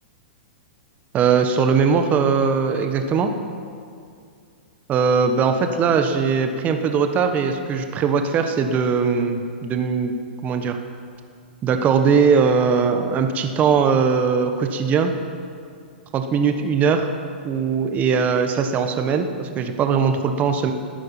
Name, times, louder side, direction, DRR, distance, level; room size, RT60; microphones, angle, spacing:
voice 1, 1.1-3.3 4.9-10.1 10.4-10.8 11.6-15.1 16.1-17.1 17.4-20.7, right 6 dB, 25° right, 7 dB, 1.2 m, -20 dB
13.0 x 9.7 x 8.6 m, 2.3 s
hypercardioid pair, 120°, 6 cm